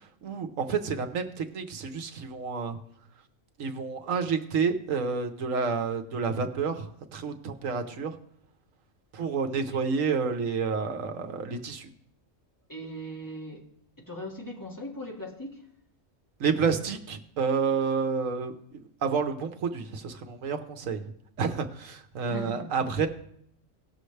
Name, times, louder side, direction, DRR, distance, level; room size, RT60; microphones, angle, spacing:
voice 1, 0.2-2.8 3.6-8.2 9.1-11.9 16.4-21.0 21.4-23.1, right 5 dB, 75° right, 6 dB, 1.3 m, -29 dB
voice 2, 12.7-13.7 14.0-15.7 22.3-22.7, equal, 15° left, -2 dB, 1.8 m, -39 dB
18.5 x 6.7 x 3.2 m, 0.67 s
omnidirectional pair, 1.4 m